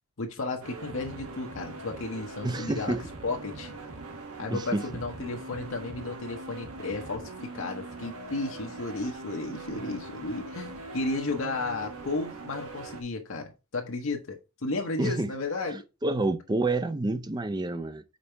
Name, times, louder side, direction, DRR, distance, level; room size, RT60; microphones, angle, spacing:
voice 1, 0.2-3.0 3.2-3.7 4.4-15.8, left 3 dB, 65° left, 0.8 m, -33 dB
sound 1, 0.6-13.0, right 2 dB, 85° right, 1.3 m, -42 dB
voice 2, 2.4-3.0 4.5-4.8 15.0-15.3 15.7-18.0, right 2 dB, 20° right, 0.4 m, -29 dB
5.2 x 4.1 x 4.3 m
head